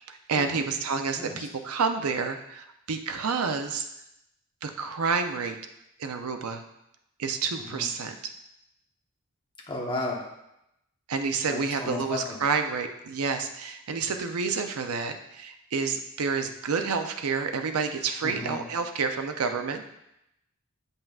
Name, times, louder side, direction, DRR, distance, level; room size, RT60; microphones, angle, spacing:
voice 1, 0.0-3.8 4.6-5.6 6.0-6.6 7.2-8.3 11.1-19.8, right 5 dB, 85° right, 6 dB, 0.5 m, -29 dB
voice 2, 1.2-1.5 7.7-7.9 9.7-10.2 11.5-12.4 18.2-18.6, left 2 dB, 20° left, -2 dB, 1.0 m, -34 dB
7.1 x 5.5 x 2.4 m, 0.84 s
head